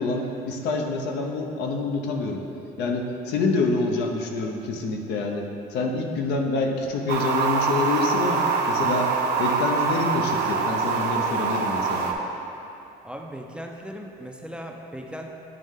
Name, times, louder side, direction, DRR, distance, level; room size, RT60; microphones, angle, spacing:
voice 1, 0.0-2.4 2.8-5.5 5.7-9.1 9.4-12.1, left 3 dB, 80° left, 2 dB, 0.6 m, -27 dB
sound 1, 7.1-12.1, right 5 dB, 80° right, 0.6 m, -24 dB
voice 2, 13.0-15.3, equal, 5° right, 1 dB, 0.4 m, -37 dB
9.0 x 3.1 x 3.6 m, 2.8 s
cardioid pair, 110°, 17 cm